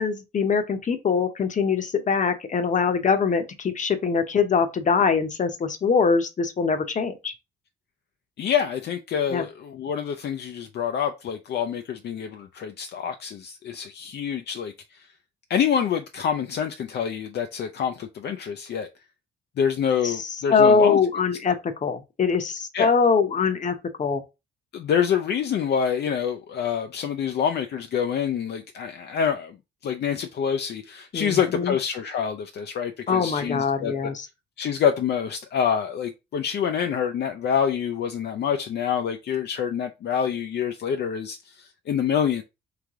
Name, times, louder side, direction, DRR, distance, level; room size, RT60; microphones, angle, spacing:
voice 1, 0.0-7.3 9.3-9.4 20.0-20.1 20.5-24.2 31.1-31.8 33.1-34.3, left 5 dB, 40° left, 0.9 m, -23 dB
voice 2, 8.4-15.1 15.5-18.9 19.6-21.0 21.5-21.6 22.7-22.9 24.7-29.6 29.8-33.9 34.6-42.4, left 8 dB, 60° left, 0.5 m, -26 dB
3.3 x 3.3 x 3.6 m
cardioid pair, 90°, 20 cm